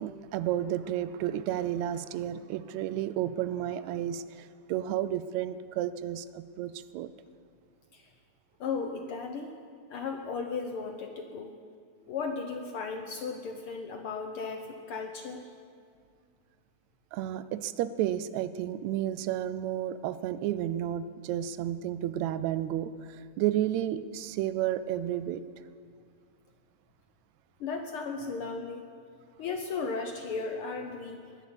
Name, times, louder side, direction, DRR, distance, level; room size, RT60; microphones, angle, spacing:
voice 1, 0.0-7.1 17.1-22.9 23.4-25.4, right 12 dB, 80° right, 14 dB, 1.8 m, -32 dB
voice 2, 8.6-9.5 9.9-11.5 12.1-15.4 27.6-28.8 29.4-31.2, left 4 dB, 65° left, 4 dB, 1.4 m, -35 dB
19.0 x 10.5 x 7.1 m, 2.1 s
omnidirectional pair, 3.3 m